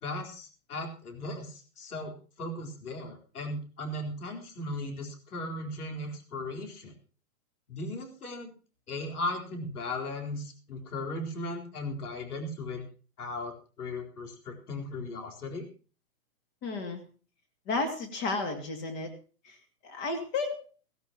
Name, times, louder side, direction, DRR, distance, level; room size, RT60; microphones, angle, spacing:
voice 1, 0.0-6.9 7.7-8.5 8.9-12.9 13.2-15.7, left 1 dB, 70° left, 2 dB, 4.3 m, -37 dB
voice 2, 16.6-17.0 17.7-19.1 19.4-19.6 19.8-20.6, left 3 dB, 20° left, 5 dB, 2.5 m, -32 dB
17.5 x 16.5 x 3.0 m, 0.38 s
hypercardioid pair, 155°, 47 cm